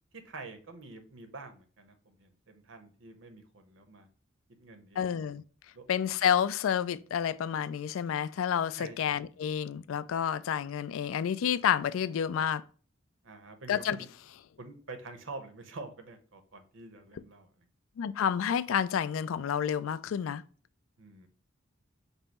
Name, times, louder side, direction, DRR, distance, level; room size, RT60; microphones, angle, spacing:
voice 1, 0.1-4.1 4.6-5.1 5.7-5.8 8.8-9.0 13.2-14.1 14.6-17.7 21.0-21.3, right 3 dB, 70° right, 0.9 m, -47 dB
voice 2, 5.0-5.4 5.9-12.6 13.7-14.0 18.0-20.4, left 8 dB, 80° left, 0.3 m, -29 dB
5.4 x 2.0 x 4.2 m
head